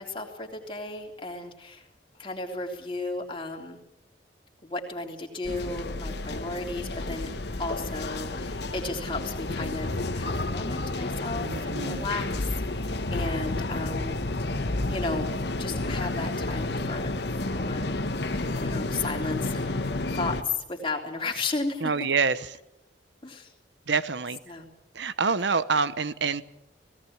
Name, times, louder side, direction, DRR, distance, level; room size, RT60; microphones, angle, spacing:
voice 1, 0.0-1.8 2.2-3.8 4.6-7.3 7.6-14.2 14.9-15.3 15.6-17.1 17.5-17.9 18.5-19.8 20.1-21.9 23.2-23.5 24.5-24.7, left 3 dB, 30° left, 1 dB, 3.3 m, -34 dB
sound 1, 5.4-20.4, left 2 dB, 60° left, 1.3 m, -31 dB
voice 2, 11.4-12.1 21.8-22.5 23.9-24.4 24.9-26.4, right 5 dB, 75° right, 15 dB, 1.0 m, -26 dB
18.5 x 17.5 x 8.7 m, 0.85 s
head